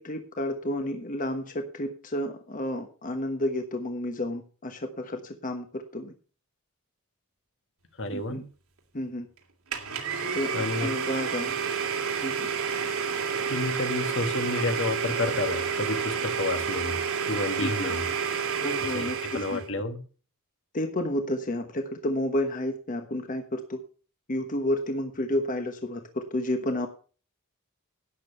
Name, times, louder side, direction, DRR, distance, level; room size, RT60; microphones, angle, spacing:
voice 1, 0.0-6.1 8.1-8.4 8.9-9.3 10.3-10.5 10.8-11.6 12.2-12.5 17.6-17.9 18.6-19.6 20.7-23.8 24.3-26.9, left 1 dB, 40° left, 6 dB, 1.2 m, -31 dB
voice 2, 8.0-8.4 10.5-10.9 13.5-17.0 17.3-18.1 18.9-20.0, left 2 dB, 60° left, 8 dB, 1.6 m, -30 dB
Domestic sounds home sounds, 9.7-19.7, right 6 dB, 85° right, 2.7 m, -30 dB
12.0 x 9.0 x 5.6 m, 0.38 s
head